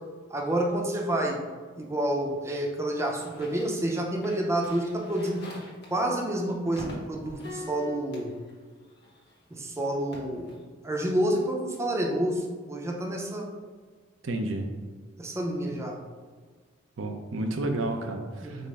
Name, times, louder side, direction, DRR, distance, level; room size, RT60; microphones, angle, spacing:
voice 1, 0.3-1.4 1.8-5.5 5.9-8.3 9.5-10.5 10.8-13.5 15.2-16.0 18.4-18.7, right 1 dB, 15° right, 0 dB, 0.5 m, -29 dB
sound 1, 2.2-9.5 9.8-10.6, left 1 dB, 60° left, 1.2 m, -45 dB
voice 2, 14.2-14.7 17.0-18.7, right 2 dB, 85° right, 4 dB, 0.6 m, -31 dB
5.2 x 2.0 x 4.7 m, 1.5 s
head